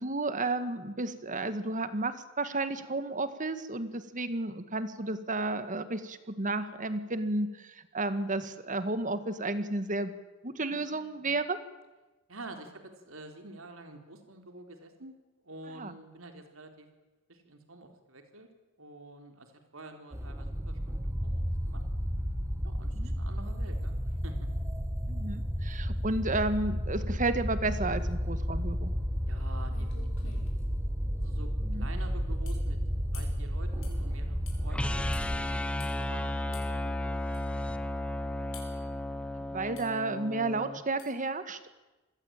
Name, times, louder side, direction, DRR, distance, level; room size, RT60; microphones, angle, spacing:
voice 1, 0.0-10.1 10.4-11.6 15.8-15.9 23.0-23.1 25.1-28.9 31.7-31.9 39.5-41.6, right 2 dB, 40° right, 11 dB, 1.8 m, -32 dB
voice 2, 12.3-15.2 15.4-16.9 17.3-18.5 18.8-21.8 22.6-24.4 29.3-30.4 31.2-31.5 31.8-32.8 33.1-37.2, right 2 dB, 75° right, 5 dB, 4.0 m, -48 dB
sound 1, 20.1-35.4, equal, 15° right, 1.6 m, -32 dB
sound 2, 29.3-29.4 29.7-30.6 32.5-32.7 33.1-33.4 33.8-34.0 34.5-34.6 35.1-35.3 35.8-36.0 36.5-36.7 37.3-37.4 38.5-38.9 39.8-40.0 41.0-41.2, left 5 dB, 70° left, 7.8 m, -50 dB
sound 3, 34.7-40.8, left 1 dB, 5° left, 1.2 m, -34 dB
27.5 x 20.0 x 9.0 m, 1.1 s
head